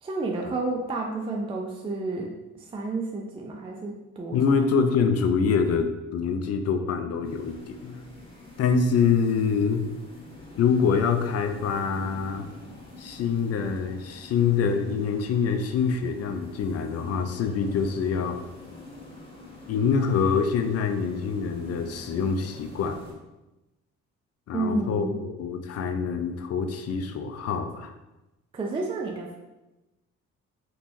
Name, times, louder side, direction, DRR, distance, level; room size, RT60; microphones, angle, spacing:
voice 1, 0.0-4.4 24.5-25.2 28.5-29.4, right 3 dB, 20° right, 1 dB, 0.4 m, -31 dB
voice 2, 4.3-8.0 8.6-9.8 10.6-12.5 13.0-18.4 19.7-23.0 24.5-25.1 25.4-27.9, left 6 dB, 55° left, 7 dB, 0.4 m, -25 dB
sound 1, 7.2-23.1, left 2 dB, 20° left, 1.1 m, -46 dB
3.6 x 2.9 x 2.6 m, 1.0 s
cardioid pair, 90°, 30 cm